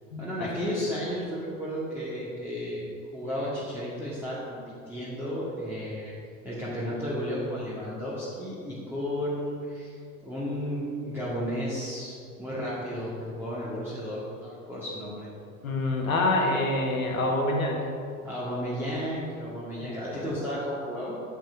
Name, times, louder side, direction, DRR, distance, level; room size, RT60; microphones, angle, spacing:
voice 1, 0.2-4.6 4.9-6.1 6.4-15.3 18.2-21.2, equal, 5° right, -10 dB, 1.9 m, -33 dB
voice 2, 15.6-17.9 20.1-20.3, left 2 dB, 80° left, 0 dB, 1.4 m, -26 dB
8.1 x 5.8 x 4.5 m, 2.4 s
figure-of-eight pair, 70°, 41 cm